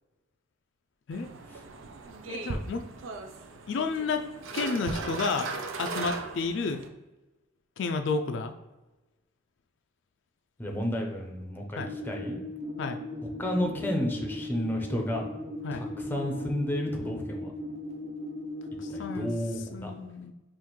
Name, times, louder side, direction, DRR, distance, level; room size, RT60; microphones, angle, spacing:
sound 1, 1.1-6.9, right 4 dB, 85° right, 0.5 m, -38 dB
voice 1, 2.3-2.9 3.7-4.2 4.5-5.5 5.8-6.8 7.8-8.5 11.8-11.9 12.8-13.0 15.6-15.9 18.8-19.3 19.7-20.3, left 4 dB, 70° left, 6 dB, 0.4 m, -31 dB
voice 2, 10.6-12.4 13.4-15.2 15.7-15.8 16.1-17.5 18.9-19.9, left 1 dB, 10° left, 1 dB, 0.6 m, -31 dB
sound 2, 11.8-19.3, left 1 dB, 35° right, 0.8 m, -38 dB
5.6 x 2.5 x 3.0 m, 1.1 s
head